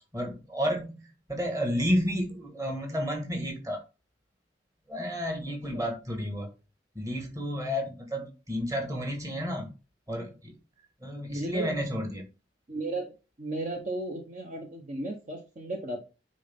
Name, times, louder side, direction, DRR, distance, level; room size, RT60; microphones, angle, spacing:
voice 1, 0.0-3.8 4.9-6.5 6.9-9.7 10.1-10.6 11.0-12.3, equal, 20° right, 1.6 m, -31 dB
voice 2, 11.3-11.7 12.7-13.1 13.4-16.0, right 2 dB, 40° right, 1.0 m, -34 dB
9.4 x 3.9 x 3.6 m
head